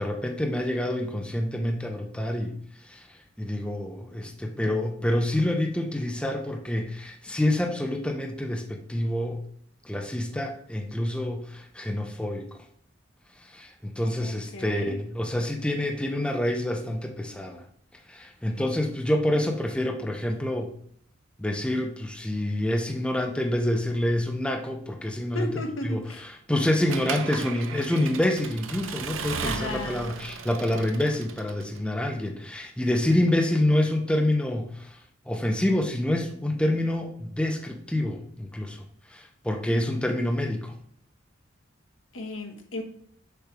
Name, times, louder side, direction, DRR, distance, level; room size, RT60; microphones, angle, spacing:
voice 1, 0.0-2.6 2.9-3.0 3.4-9.4 9.8-12.5 13.5-17.6 18.1-20.7 21.4-25.5 25.9-34.9 35.3-38.8 39.1-40.7, left 1 dB, 5° left, 3 dB, 0.6 m, -27 dB
voice 2, 14.2-15.0 25.3-26.3 29.4-30.1 42.1-42.8, left 2 dB, 80° left, 4 dB, 1.3 m, -34 dB
Accelerating revving vroom / Mechanisms, 26.9-31.8, right 5 dB, 90° right, 0.6 m, -36 dB
6.6 x 3.3 x 6.0 m, 0.63 s
head